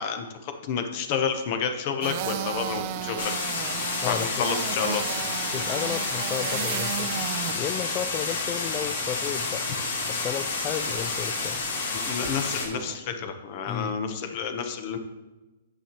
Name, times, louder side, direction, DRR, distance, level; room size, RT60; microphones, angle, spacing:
voice 1, 0.0-3.3 4.1-5.0 12.1-15.0, left 6 dB, 40° left, 7 dB, 0.8 m, -30 dB
sound 1, 2.0-13.0, right 10 dB, 40° right, 0.5 m, -36 dB
sound 2, 3.2-12.7, left 4 dB, 70° left, 2.2 m, -30 dB
voice 2, 4.0-4.5 5.5-7.2 7.5-9.6 10.0-11.6 13.7-14.0, left 9 dB, 25° left, 13 dB, 0.3 m, -33 dB
9.1 x 6.8 x 2.9 m, 1.1 s
hypercardioid pair, 155°, 0 cm